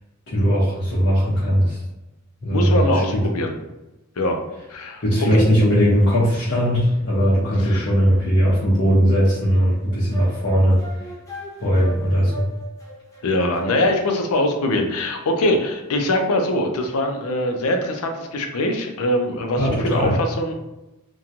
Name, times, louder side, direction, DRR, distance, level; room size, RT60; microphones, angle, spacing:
voice 1, 0.3-1.8 2.4-3.0 5.0-10.8 11.6-12.4 19.6-20.1, equal, 55° left, -8 dB, 0.7 m, -18 dB
voice 2, 2.5-3.5 4.2-4.4 4.7-5.0 7.6-7.9 13.2-20.5, left 1 dB, 80° left, 4 dB, 0.5 m, -22 dB
sound 1, 9.6-14.2, right 2 dB, 15° left, 0.6 m, -37 dB
2.9 x 2.2 x 2.5 m, 1.0 s
head